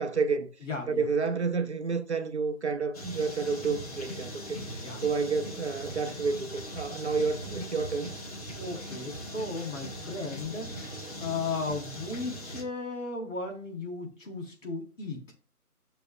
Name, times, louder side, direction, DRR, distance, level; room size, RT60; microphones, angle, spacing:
voice 1, 0.0-0.5 0.9-8.1, right 4 dB, 45° right, 0.8 m, -30 dB
voice 2, 0.6-1.1 4.5-5.0 8.5-15.2, left 3 dB, 50° left, 4.0 m, -36 dB
sound 1, 2.9-12.6, equal, 25° left, 1.5 m, -40 dB
13.0 x 6.7 x 2.3 m
figure-of-eight pair, 160°, 47 cm